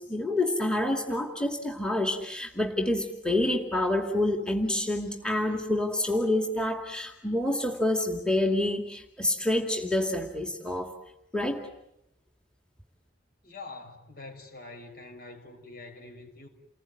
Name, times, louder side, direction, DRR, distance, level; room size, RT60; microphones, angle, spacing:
voice 1, 0.0-10.9 11.3-11.7, left 1 dB, 5° left, 3 dB, 2.4 m, -28 dB
voice 2, 13.4-16.5, left 3 dB, 55° left, 4 dB, 6.3 m, -45 dB
29.5 x 20.5 x 9.5 m, 0.85 s
head